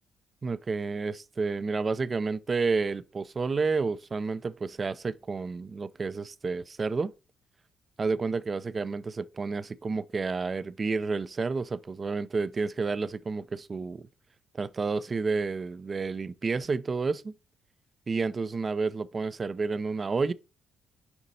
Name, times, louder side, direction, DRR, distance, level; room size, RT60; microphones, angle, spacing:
voice 1, 0.4-7.1 8.0-14.0 14.5-17.3 18.1-20.3, right 4 dB, 35° right, 0.5 m, -30 dB
7.0 x 5.1 x 4.1 m
cardioid pair, 75°, 0 cm